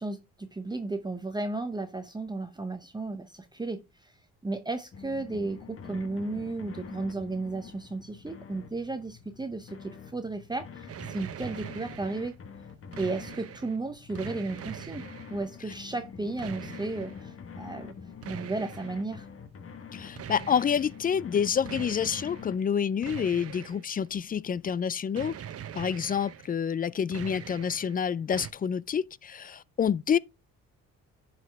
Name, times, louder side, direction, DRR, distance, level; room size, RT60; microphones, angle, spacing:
voice 1, 0.0-4.2 4.4-12.3 13.0-15.0 15.3-17.9 18.3-19.3, right 3 dB, 15° right, 0.7 m, -34 dB
sound 1, 4.9-22.6, left 6 dB, 45° left, 1.3 m, -46 dB
sound 2, 10.9-12.4 12.7-13.8 14.1-15.4 16.4-17.2 18.2-19.1 20.1-21.0 21.6-22.5 23.0-24.2 25.2-26.5 26.9-28.0 28.3-28.5, right 9 dB, 50° right, 0.8 m, -42 dB
voice 2, 19.9-25.3 25.8-30.2, left 7 dB, 30° left, 0.3 m, -28 dB
11.0 x 4.9 x 3.4 m
cardioid pair, 90°, 30 cm